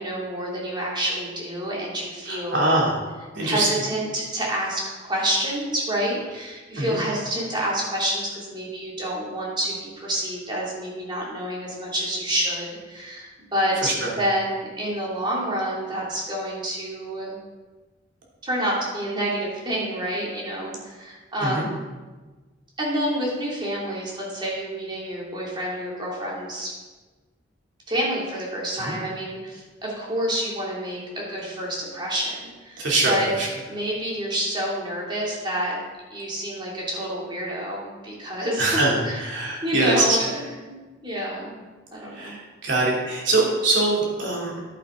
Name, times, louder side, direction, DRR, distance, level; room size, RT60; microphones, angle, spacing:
voice 1, 0.0-2.9 3.4-17.4 18.4-21.7 22.8-26.7 27.9-33.3 33.7-35.8 36.1-38.8 39.0-39.2 39.6-40.8 41.0-41.6 41.9-42.4, equal, 25° right, -5 dB, 2.8 m, -28 dB
voice 2, 2.3-3.0 3.3-3.7 6.7-7.0 13.8-14.1 21.4-21.7 28.8-28.9 32.8-33.5 38.6-40.2 42.1-44.6, right 2 dB, 70° right, -3 dB, 2.9 m, -23 dB
11.0 x 9.2 x 3.8 m, 1.3 s
head